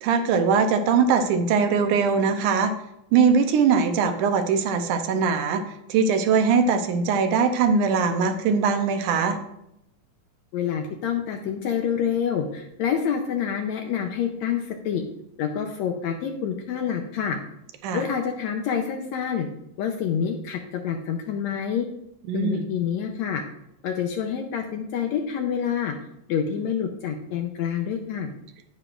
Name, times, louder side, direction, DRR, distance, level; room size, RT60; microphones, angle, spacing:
voice 1, 0.0-2.7 3.1-5.6 5.9-9.4 17.8-18.0 22.3-22.7, right 5 dB, 75° right, 7 dB, 2.1 m, -21 dB
voice 2, 10.5-15.0 15.4-17.4 17.9-19.5 19.8-21.9 22.3-23.4 23.8-25.9 26.3-28.3, left 8 dB, 75° left, 4 dB, 1.7 m, -27 dB
9.8 x 9.8 x 2.5 m, 0.81 s
omnidirectional pair, 3.7 m